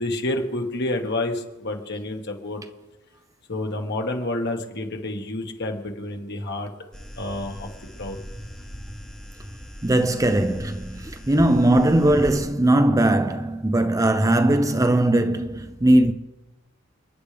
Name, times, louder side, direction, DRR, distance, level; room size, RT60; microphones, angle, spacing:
voice 1, 0.0-2.6 3.5-6.7 7.2-7.7 8.0-8.2, left 2 dB, 55° left, 1.8 m, -29 dB
sound 1, 6.9-12.4, equal, 5° left, 1.1 m, -38 dB
voice 2, 9.8-16.1, right 1 dB, 15° right, 0.6 m, -19 dB
29.5 x 10.0 x 3.4 m
head